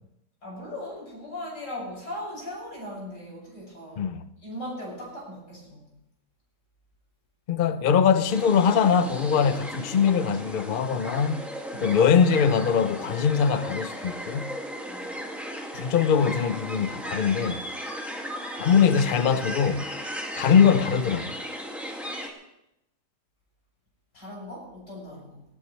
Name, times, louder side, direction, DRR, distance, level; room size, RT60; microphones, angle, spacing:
voice 1, 0.4-4.1 4.4-5.8 11.7-12.0 14.9-15.2 24.1-25.5, left 1 dB, 85° left, 7.4 m, -38 dB
voice 2, 7.5-11.4 11.8-14.5 15.7-17.6 18.6-19.9 20.4-21.3, left 7 dB, 65° left, 0.5 m, -22 dB
sound 1, 8.3-22.3, equal, ahead, 1.9 m, -36 dB
19.0 x 16.5 x 3.2 m
omnidirectional pair, 1.8 m